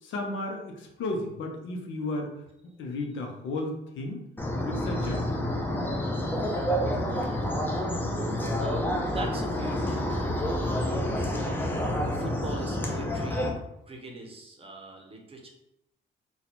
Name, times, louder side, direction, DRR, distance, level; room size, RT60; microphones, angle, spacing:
voice 1, 0.0-2.3 2.8-4.2 4.7-5.4, left 2 dB, 75° left, 2 dB, 0.7 m, -33 dB
sound 1, 4.4-13.5, left 1 dB, 10° left, 0.6 m, -28 dB
voice 2, 7.1-8.3 8.6-11.7 12.1-13.5 13.8-15.5, right 2 dB, 30° right, 1 dB, 0.8 m, -42 dB
2.8 x 2.3 x 4.1 m, 0.84 s
cardioid pair, 90°, 20 cm